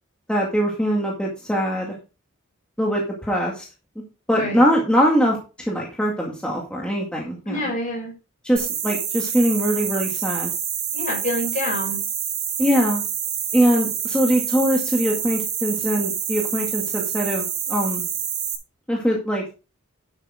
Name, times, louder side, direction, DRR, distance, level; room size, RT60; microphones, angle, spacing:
voice 1, 0.3-2.0 2.8-3.7 4.3-7.7 8.4-10.5 12.6-13.0 13.5-18.0 18.9-19.4, equal, 5° left, -2 dB, 2.0 m, -22 dB
voice 2, 4.3-4.6 7.4-8.1 10.9-12.0, left 1 dB, 40° left, 1 dB, 5.6 m, -27 dB
sound 1, 8.6-18.6, right 8 dB, 80° right, 3.7 m, -27 dB
11.0 x 8.1 x 3.6 m, 0.32 s
head